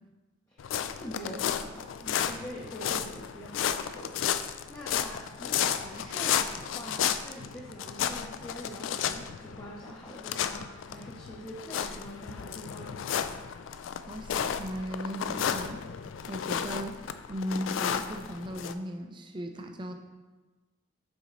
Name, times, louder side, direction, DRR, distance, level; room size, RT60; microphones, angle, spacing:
sound 1, 0.6-18.7, left 9 dB, 85° left, 0.3 m, -33 dB
voice 1, 1.0-13.0, equal, 20° left, -6 dB, 0.7 m, -44 dB
voice 2, 14.1-15.8 16.3-17.0 17.3-19.9, equal, 25° right, 5 dB, 0.4 m, -37 dB
6.1 x 4.2 x 3.9 m, 1.2 s
head